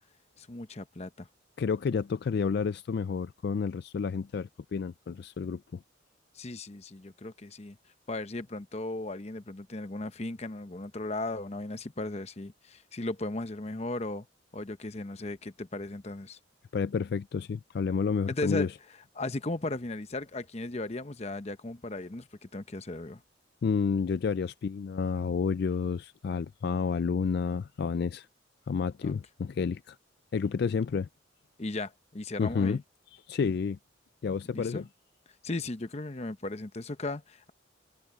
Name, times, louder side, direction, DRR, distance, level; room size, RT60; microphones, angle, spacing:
voice 1, 0.4-1.3 6.3-7.8 8.1-14.3 14.5-16.4 18.3-18.7 19.2-23.2 29.0-29.1 31.6-32.8 34.5-34.9 35.4-37.5, left 2 dB, 30° left, 0.8 m, -36 dB
voice 2, 1.6-5.8 16.7-18.7 23.6-28.3 28.7-30.0 30.3-31.1 32.4-32.8 33.3-33.8 34.2-34.9, left 5 dB, 55° left, 0.3 m, -30 dB
head